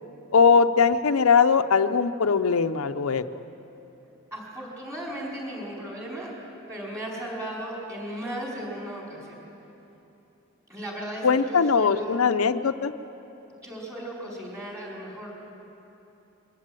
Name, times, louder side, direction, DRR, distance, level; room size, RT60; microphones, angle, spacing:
voice 1, 0.3-3.2 11.2-12.9, left 5 dB, 80° left, 8 dB, 0.6 m, -20 dB
voice 2, 4.3-6.3 6.7-9.4 10.7-12.3 13.6-15.3, right 1 dB, 15° right, -3 dB, 5.0 m, -36 dB
23.0 x 15.0 x 9.0 m, 3.0 s
head